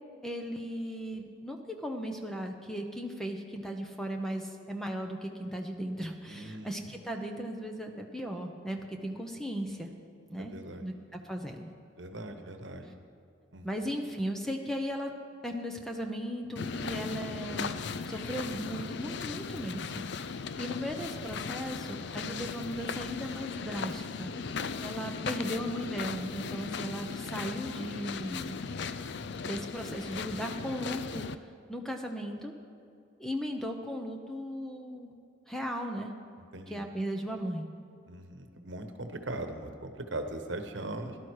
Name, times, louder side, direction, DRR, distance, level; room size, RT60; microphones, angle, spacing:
voice 1, 0.2-9.9 10.3-10.5 10.8-11.7 13.6-15.1 15.4-28.6 29.4-31.4 31.7-32.5 33.2-35.1 35.5-36.1 36.7-37.7, equal, ahead, 3 dB, 0.8 m, -37 dB
voice 2, 6.3-6.7 10.4-10.8 12.0-12.9 13.5-13.7 16.8-17.0 27.2-27.3 27.8-27.9 36.5-36.9 38.1-41.2, right 2 dB, 60° right, 6 dB, 1.2 m, -40 dB
sound 1, 16.6-31.4, left 5 dB, 55° left, 0.4 m, -37 dB
17.0 x 12.0 x 4.8 m, 2.5 s
head